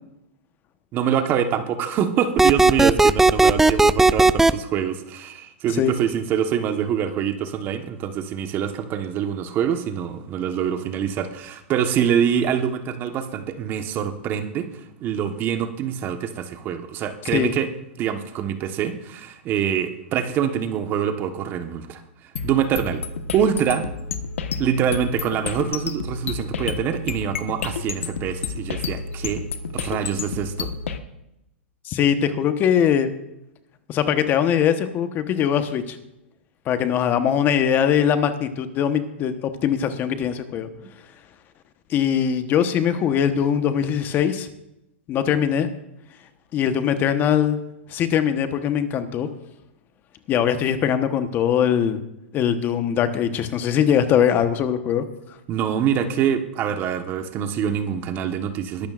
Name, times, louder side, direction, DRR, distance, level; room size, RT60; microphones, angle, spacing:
voice 1, 0.9-14.7 15.0-17.7 18.0-22.0 22.4-23.0 23.3-23.9 24.6-29.4 29.7-30.7 40.8-40.9 55.5-58.9, right 8 dB, 30° right, 8 dB, 1.3 m, -25 dB
sound 1, 2.4-4.5, right 3 dB, 5° right, 0.4 m, -15 dB
sound 2, 22.4-31.0, left 5 dB, 85° left, 1.3 m, -30 dB
voice 2, 31.8-33.1 33.9-36.0 36.7-40.7 41.9-44.5 45.1-45.7 46.5-47.6 47.9-49.3 50.3-52.0 52.3-55.0, left 8 dB, 30° left, 9 dB, 1.1 m, -21 dB
22.0 x 12.0 x 2.5 m, 0.86 s
hypercardioid pair, 135°, 7 cm